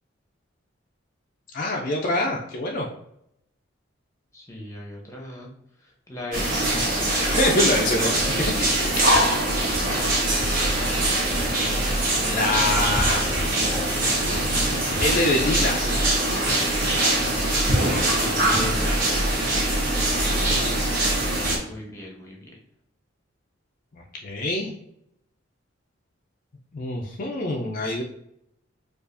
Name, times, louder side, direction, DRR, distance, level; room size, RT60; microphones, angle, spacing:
voice 1, 1.5-2.9 7.3-8.1 8.6-9.2 12.2-13.2 15.0-15.8 23.9-24.7 26.7-28.0, left 2 dB, 40° left, -1 dB, 0.4 m, -25 dB
voice 2, 4.3-5.5 5.8-6.9 9.9-10.2 18.2-19.0 21.7-22.6, left 1 dB, 15° left, -1 dB, 0.7 m, -37 dB
sound 1, 6.3-21.6, right 1 dB, 45° right, 1.0 m, -23 dB
4.6 x 2.4 x 2.5 m, 0.75 s
head